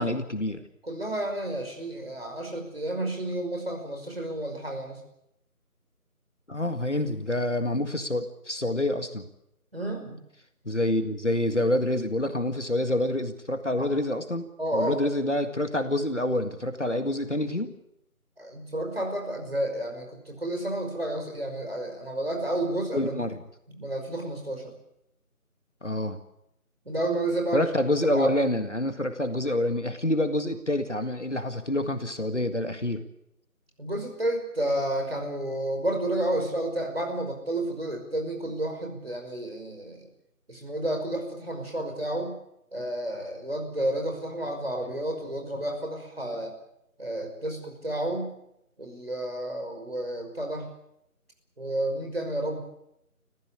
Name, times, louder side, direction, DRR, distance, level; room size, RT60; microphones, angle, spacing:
voice 1, 0.0-0.6 6.5-9.3 10.7-14.4 14.7-17.7 22.9-23.4 25.8-26.2 27.5-33.0, left 1 dB, 50° left, 8 dB, 2.0 m, -27 dB
voice 2, 0.8-5.0 9.7-10.2 13.8-13.9 14.6-15.0 18.4-23.1 23.7-24.7 26.9-27.7 28.1-28.3 33.8-40.1 40.5-42.4 42.7-46.5 47.0-48.3 48.8-50.7 51.6-52.6, right 1 dB, 40° right, 3 dB, 5.5 m, -31 dB
28.5 x 15.0 x 8.5 m, 0.80 s
figure-of-eight pair, 175°, 45 cm